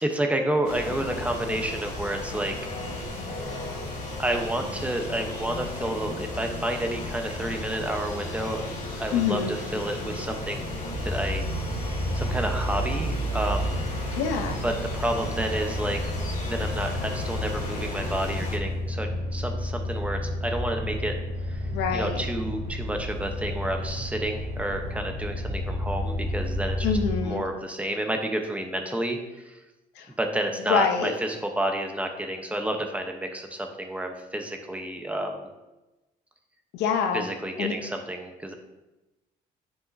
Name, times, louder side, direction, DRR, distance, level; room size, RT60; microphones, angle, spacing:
voice 1, 0.0-2.5 4.2-8.6 9.0-10.6 11.0-13.8 14.6-21.1 21.4-21.6 21.9-26.9 27.2-29.6 30.2-35.5 37.1-38.5, right 1 dB, 10° right, 4 dB, 0.8 m, -30 dB
sound 1, 0.6-18.6, left 2 dB, 50° left, 2.1 m, -35 dB
voice 2, 9.1-9.6 14.2-14.6 21.7-22.2 26.8-27.5 30.0-30.1 30.7-31.1 36.7-37.3 37.6-37.7, left 6 dB, 90° left, 5 dB, 0.8 m, -26 dB
sound 2, 10.9-27.2, equal, 80° right, 1.6 m, -31 dB
9.4 x 5.0 x 2.7 m, 1.0 s
cardioid pair, 110°, 17 cm